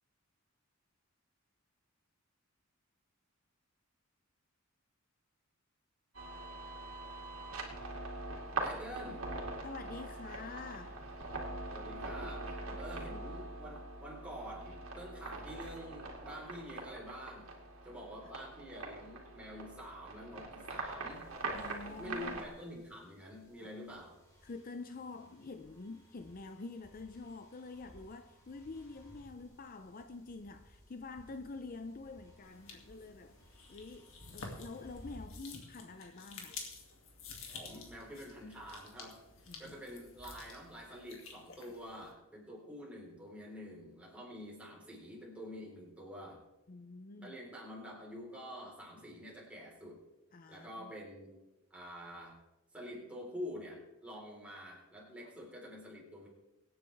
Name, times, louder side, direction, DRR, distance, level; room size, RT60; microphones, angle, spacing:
sound 1, 6.1-22.5, right 2 dB, 85° right, 2.6 m, -43 dB
voice 1, 8.6-9.2 11.7-17.5 17.8-21.3 21.8-24.2 37.5-39.2 39.6-46.4 47.2-50.0 50.5-51.3 51.7-52.4 52.7-56.3, equal, 5° right, 4.1 m, -47 dB
voice 2, 9.6-11.0 21.5-22.4 23.6-23.7 24.4-33.3 33.7-36.6 39.5-39.7 46.7-47.4 49.0-49.2 50.3-50.9, left 3 dB, 45° left, 0.5 m, -47 dB
sound 2, 21.1-35.3, equal, 15° left, 3.7 m, -60 dB
sound 3, 32.4-42.1, left 4 dB, 75° left, 2.4 m, -51 dB
24.0 x 9.5 x 3.5 m
head